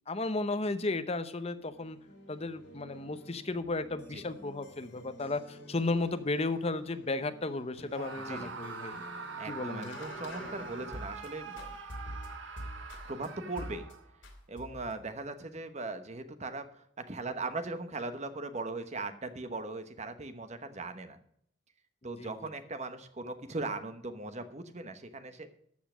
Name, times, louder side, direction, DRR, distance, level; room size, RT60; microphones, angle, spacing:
voice 1, 0.1-2.0 2.3-8.9 9.5-10.0 22.2-22.3, left 2 dB, 30° left, 10 dB, 0.8 m, -34 dB
sound 1, 1.5-11.3 11.6-13.3 13.6-13.9 14.2-15.0, equal, 70° left, 3.0 m, -48 dB
Screaming, 7.9-14.2, right 4 dB, 70° right, 1.5 m, -44 dB
voice 2, 8.2-8.5 9.4-11.8 13.1-13.9 14.5-21.2 22.0-25.5, right 3 dB, 35° right, 9 dB, 1.1 m, -39 dB
13.5 x 5.7 x 6.1 m, 0.69 s
head